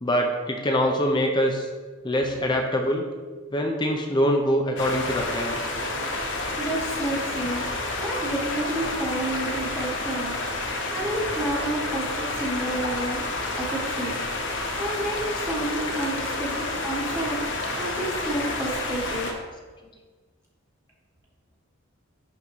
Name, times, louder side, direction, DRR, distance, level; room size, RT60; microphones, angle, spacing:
voice 1, 0.0-1.7 2.0-3.1 3.5-5.5, equal, 20° left, 2 dB, 0.5 m, -24 dB
sound 1, 4.8-19.3, left 2 dB, 55° left, 0.8 m, -30 dB
voice 2, 6.6-7.7 8.0-10.4 10.6-13.2 13.6-14.1 14.8-17.4 17.8-19.4, right 1 dB, 15° right, -7 dB, 1.2 m, -30 dB
10.5 x 3.6 x 3.1 m, 1.4 s
head